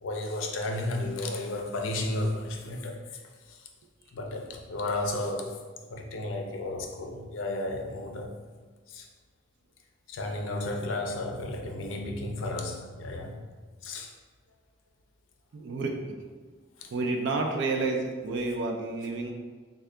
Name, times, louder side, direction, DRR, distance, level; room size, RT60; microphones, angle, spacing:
voice 1, 0.0-3.0 3.5-3.6 4.1-5.6 5.9-8.3 8.9-9.1 10.1-13.4 13.8-14.1, left 2 dB, 85° left, 2 dB, 0.5 m, -33 dB
voice 2, 15.5-16.3 16.8-19.3, right 3 dB, 65° right, 2 dB, 0.4 m, -30 dB
3.6 x 2.3 x 3.3 m, 1.5 s
head